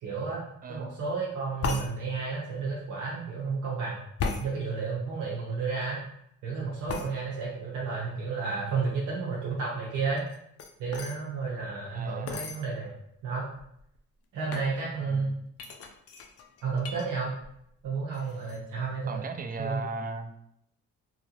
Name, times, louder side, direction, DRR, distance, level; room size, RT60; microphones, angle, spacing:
voice 1, 0.0-4.0 4.4-6.0 6.4-10.2 10.8-12.9 13.2-13.5 14.3-15.3 16.6-17.3 17.8-19.2 19.6-19.8, right 4 dB, 75° right, -5 dB, 0.8 m, -32 dB
voice 2, 0.6-0.9 11.9-12.5 15.0-15.4 19.1-20.3, right 3 dB, 30° right, 6 dB, 0.4 m, -37 dB
sound 1, 1.6-1.9 4.2-4.5 6.9-7.1 10.2-11.2 12.3-12.6 13.3-13.4 13.6-14.0 14.5-14.7 15.6-17.1 17.4-17.8 18.1-18.6, left 4 dB, 55° left, 0.5 m, -35 dB
2.8 x 2.5 x 2.8 m, 0.73 s
cardioid pair, 90°, 30 cm